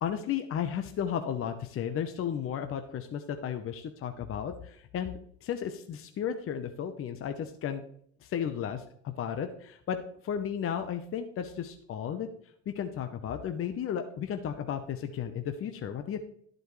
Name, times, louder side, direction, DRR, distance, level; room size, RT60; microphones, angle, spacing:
voice 1, 0.0-7.8 8.2-12.3 12.7-16.2, left 8 dB, 40° left, 7 dB, 0.9 m, -34 dB
11.5 x 7.8 x 3.2 m, 0.65 s
supercardioid pair, 90°, 36 cm